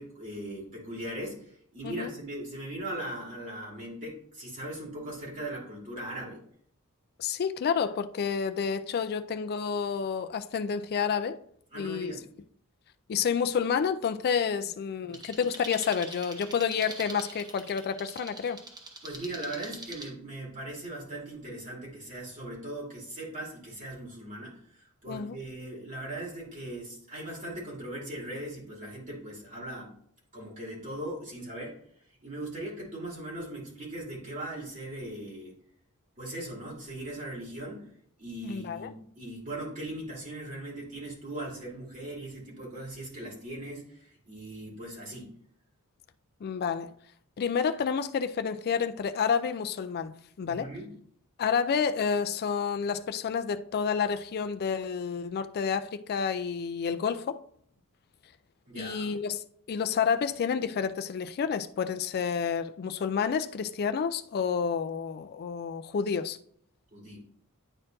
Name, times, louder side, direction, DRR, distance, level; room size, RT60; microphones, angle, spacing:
voice 1, 0.0-6.4 11.7-12.2 15.0-15.2 19.0-29.9 30.3-31.8 32.2-35.5 36.2-37.9 38.2-45.3 50.5-51.0 58.7-59.2 66.9-67.2, right 1 dB, 35° right, 2.6 m, -39 dB
voice 2, 7.2-11.4 11.8-12.1 13.1-18.6 25.1-25.4 38.4-38.9 46.4-46.9 47.4-50.7 51.4-57.4 58.8-59.4 59.7-66.4, left 6 dB, 45° left, 0.3 m, -29 dB
sound 1, 15.1-20.1, right 2 dB, 20° right, 1.0 m, -44 dB
9.7 x 4.4 x 2.6 m
head